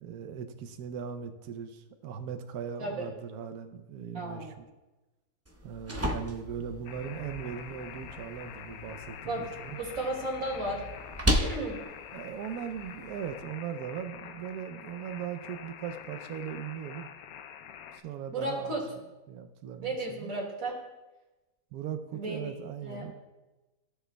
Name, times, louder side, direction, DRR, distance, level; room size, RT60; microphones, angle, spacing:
voice 1, 0.0-4.5 5.6-9.8 12.1-17.1 17.9-18.8 19.3-20.3 21.7-23.1, right 8 dB, 85° right, 8 dB, 1.1 m, -39 dB
voice 2, 4.1-4.6 9.3-9.4 9.8-10.8 11.3-11.8 18.3-18.8 19.8-20.8 22.1-22.4 22.8-23.1, right 2 dB, 65° right, -2 dB, 2.4 m, -34 dB
sound 1, 5.5-13.4, equal, 20° right, 0.4 m, -35 dB
sound 2, 6.9-18.0, left 8 dB, 80° left, 1.1 m, -46 dB
15.0 x 6.7 x 2.2 m, 1.1 s
omnidirectional pair, 1.6 m